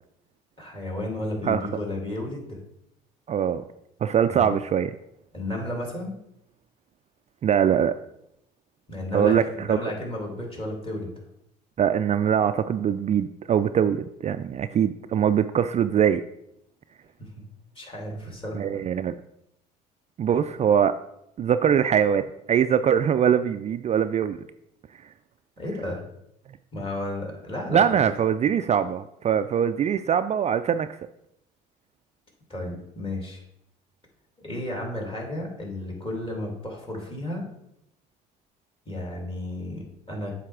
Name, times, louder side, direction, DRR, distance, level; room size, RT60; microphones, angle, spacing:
voice 1, 0.6-2.6 4.3-4.5 5.3-6.2 8.9-11.2 17.2-17.3 17.7-18.7 25.6-26.0 26.7-28.1 32.5-33.4 34.4-37.5 38.9-40.3, left 1 dB, 25° left, 0 dB, 2.9 m, -33 dB
voice 2, 3.3-3.6 4.0-4.9 7.4-7.9 9.1-9.8 11.8-16.2 18.5-19.1 20.2-21.0 21.4-24.4 27.7-30.9, right 8 dB, 35° right, 10 dB, 0.3 m, -22 dB
7.6 x 3.3 x 6.0 m, 0.79 s
hypercardioid pair, 65°, 20 cm